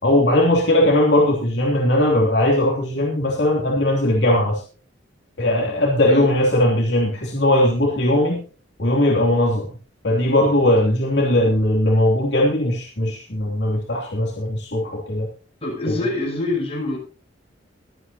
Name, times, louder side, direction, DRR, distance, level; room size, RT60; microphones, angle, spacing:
voice 1, 0.0-4.6 5.4-8.4 8.8-9.7 10.0-15.3, left 1 dB, 65° left, -2 dB, 3.0 m, -19 dB
voice 2, 15.6-17.0, left 2 dB, 30° left, -2 dB, 7.6 m, -25 dB
24.0 x 9.0 x 2.8 m, 0.37 s
head